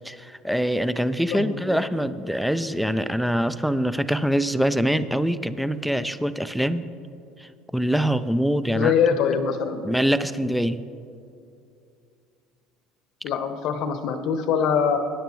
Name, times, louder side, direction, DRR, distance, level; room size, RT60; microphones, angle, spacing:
voice 1, 0.0-6.8 7.4-8.9 9.8-10.8, equal, ahead, 13 dB, 0.4 m, -24 dB
voice 2, 1.3-1.8 8.7-9.9 13.2-15.0, left 7 dB, 65° left, 8 dB, 1.0 m, -23 dB
18.0 x 10.5 x 3.1 m, 2.5 s
supercardioid pair, 110°, 0 cm